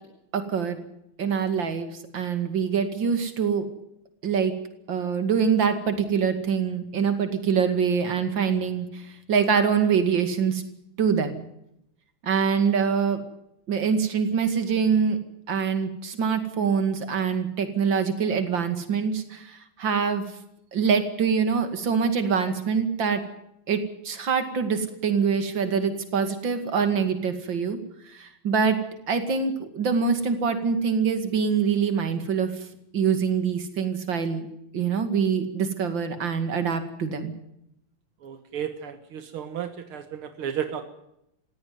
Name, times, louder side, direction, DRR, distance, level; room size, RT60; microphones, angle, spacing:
voice 1, 0.3-0.8 1.2-3.7 4.2-4.5 4.9-10.6 11.0-11.4 12.2-13.2 13.7-15.2 15.5-20.2 20.7-23.2 23.7-23.8 24.0-27.8 28.0-28.8 29.1-32.5 32.9-34.5 34.7-37.3, right 6 dB, 65° right, 8 dB, 2.9 m, -24 dB
voice 2, 38.2-40.8, right 9 dB, 85° right, 8 dB, 2.3 m, -33 dB
19.5 x 16.5 x 9.5 m, 0.79 s
omnidirectional pair, 2.3 m